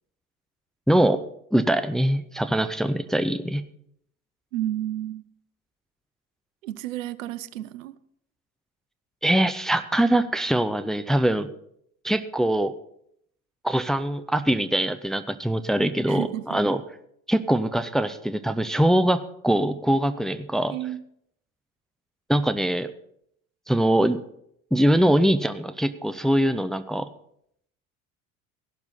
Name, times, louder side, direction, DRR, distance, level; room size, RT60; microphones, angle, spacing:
voice 1, 0.9-1.2 1.5-3.6 9.2-11.5 12.0-12.7 13.6-16.8 17.3-20.7 22.3-22.9 23.7-24.2 24.7-27.1, right 1 dB, ahead, 11 dB, 0.6 m, -22 dB
voice 2, 4.5-5.3 6.6-7.9 16.1-16.6 20.7-21.0, right 13 dB, 65° right, 16 dB, 0.8 m, -31 dB
15.5 x 11.5 x 4.1 m, 0.70 s
figure-of-eight pair, 65°, 42 cm